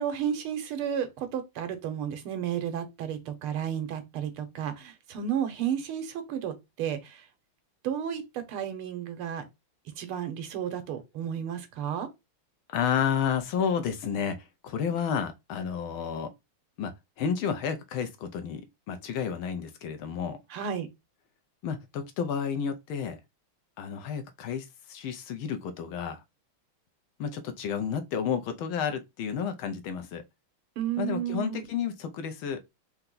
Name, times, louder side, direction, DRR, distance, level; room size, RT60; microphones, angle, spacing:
voice 1, 0.0-7.2 7.8-9.4 10.0-12.1 20.5-20.9 30.8-31.7, right 9 dB, 85° right, 1.8 m, -32 dB
voice 2, 12.7-16.3 16.8-16.9 17.2-20.4 21.6-23.2 23.8-26.2 27.2-30.2 31.0-32.6, left 7 dB, 75° left, 1.5 m, -31 dB
4.5 x 2.8 x 3.8 m
omnidirectional pair, 2.3 m